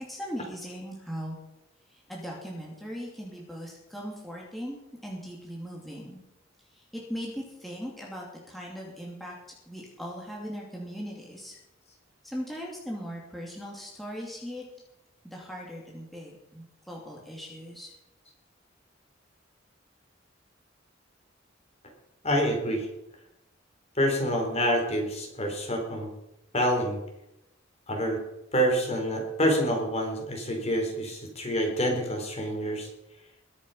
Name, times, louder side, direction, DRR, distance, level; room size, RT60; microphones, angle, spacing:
voice 1, 0.0-1.4 1.9-6.2 6.7-9.4 9.7-11.6 12.2-14.6 15.2-17.9, equal, ahead, -4 dB, 2.7 m, -39 dB
voice 2, 22.2-22.9 24.0-26.1 26.5-27.0 27.9-28.2 28.5-32.9, equal, 35° left, 2 dB, 3.7 m, -27 dB
21.5 x 7.3 x 5.7 m, 0.87 s
head